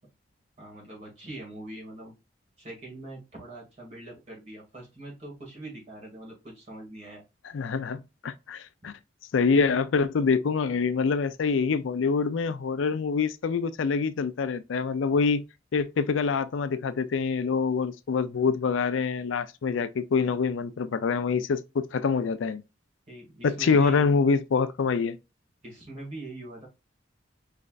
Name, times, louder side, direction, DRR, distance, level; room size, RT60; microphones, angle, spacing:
voice 1, 0.6-2.1 2.6-7.2 8.8-8.9 23.1-24.1 25.6-26.7, right 2 dB, 35° right, 2.1 m, -42 dB
voice 2, 7.5-8.9 9.3-15.4 15.7-22.6 23.4-25.2, left 5 dB, 85° left, 0.4 m, -25 dB
5.1 x 3.3 x 2.4 m
head